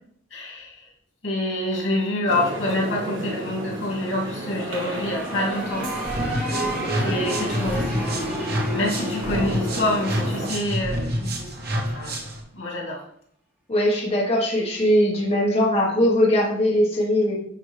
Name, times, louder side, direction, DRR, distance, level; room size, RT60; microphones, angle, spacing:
voice 1, 0.3-0.9 1.2-6.6 7.0-8.4 8.7-12.2 12.5-13.0, left 1 dB, 85° left, -2 dB, 2.5 m, -27 dB
sound 1, 2.3-10.7, right 1 dB, 75° right, 1.6 m, -32 dB
sound 2, 4.6-11.4, right 1 dB, 10° right, 2.9 m, -33 dB
sound 3, 6.0-12.4, equal, 55° right, 1.4 m, -28 dB
voice 2, 13.7-17.4, equal, 35° left, -3 dB, 1.3 m, -20 dB
9.9 x 4.3 x 3.3 m, 0.66 s
head